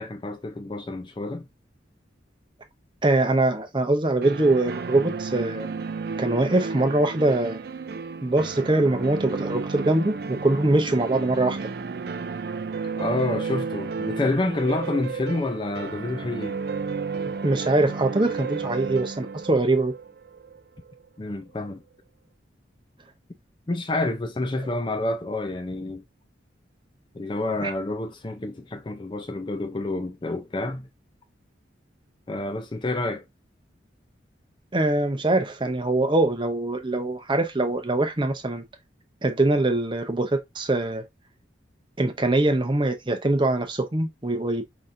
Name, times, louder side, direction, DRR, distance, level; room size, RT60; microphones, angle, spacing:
voice 1, 0.0-1.5 12.2-12.3 13.0-16.6 17.2-17.3 21.2-21.8 23.7-26.0 27.1-30.9 32.3-33.2, left 2 dB, 25° left, 0.4 m, -28 dB
voice 2, 3.0-5.7 6.2-7.6 8.2-11.6 17.4-19.9 27.6-27.7 34.7-38.6 39.2-41.0 42.0-44.6, right 2 dB, 25° right, 0.7 m, -23 dB
sound 1, 4.2-20.9, right 5 dB, 55° right, 0.4 m, -33 dB
4.9 x 4.1 x 2.6 m
head